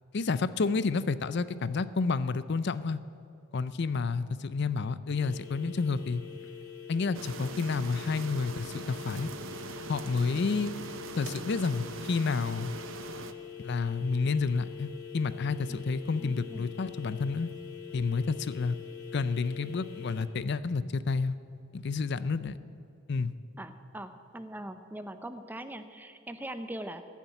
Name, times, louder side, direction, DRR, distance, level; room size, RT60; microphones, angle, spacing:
voice 1, 0.1-3.0 3.5-6.2 6.9-9.3 9.9-10.7 11.2-12.7 13.6-17.5 17.9-18.7 19.1-21.4 21.7-22.6 23.1-23.3, left 4 dB, 50° left, 15 dB, 0.5 m, -30 dB
sound 1, 5.1-20.2, left 8 dB, 85° left, 1.7 m, -45 dB
sound 2, 7.1-13.3, right 5 dB, 65° right, 0.7 m, -42 dB
voice 2, 16.2-16.7 23.6-27.0, right 1 dB, 10° right, 9 dB, 0.6 m, -41 dB
15.5 x 7.2 x 9.2 m, 2.7 s
head